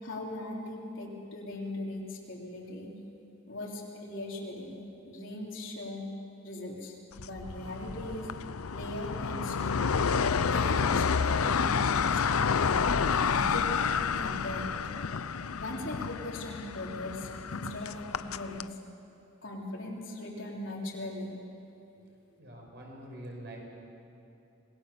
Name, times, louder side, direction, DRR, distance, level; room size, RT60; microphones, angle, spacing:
voice 1, 0.0-2.9 3.5-4.8 5.0-6.1 6.4-8.3 8.7-9.9 10.4-12.8 13.2-14.8 15.5-18.8 19.4-21.3, left 1 dB, 60° left, -1 dB, 3.6 m, -39 dB
sound 1, 7.2-18.7, left 6 dB, 85° left, 0.6 m, -29 dB
voice 2, 22.4-23.6, right 1 dB, 50° right, 0 dB, 5.2 m, -44 dB
26.5 x 20.5 x 7.0 m, 2.8 s
head